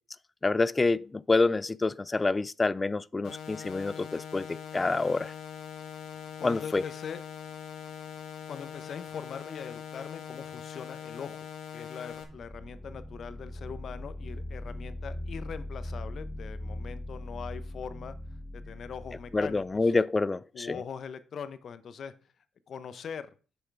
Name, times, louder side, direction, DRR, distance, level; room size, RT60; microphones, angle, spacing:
voice 1, 0.4-5.3 6.4-6.8 19.3-20.8, left 3 dB, 25° left, 0.3 m, -27 dB
sound 1, 3.2-12.2, left 8 dB, 80° left, 1.4 m, -42 dB
voice 2, 6.4-7.2 8.5-11.5 11.7-18.1 18.5-19.9 20.5-22.1 22.7-23.3, left 7 dB, 55° left, 0.8 m, -41 dB
sound 2, 12.2-19.9, left 1 dB, 5° right, 0.9 m, -40 dB
6.7 x 6.3 x 4.7 m
cardioid pair, 90°, 0 cm